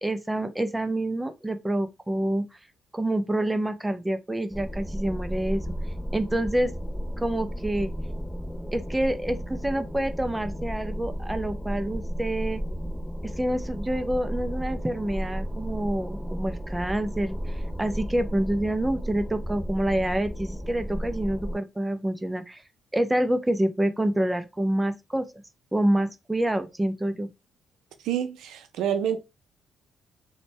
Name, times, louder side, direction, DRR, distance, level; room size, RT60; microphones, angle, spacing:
voice 1, 0.0-2.5 2.9-5.6 6.1-6.7 7.2-7.9 8.7-12.6 13.2-22.6 22.9-25.3 25.7-27.3, right 1 dB, 10° right, 0.3 m, -27 dB
sound 1, 4.5-21.6, equal, 10° left, 1.2 m, -33 dB
voice 2, 28.0-29.2, right 9 dB, 85° right, 0.4 m, -27 dB
2.5 x 2.1 x 3.1 m
cardioid pair, 90°, 0 cm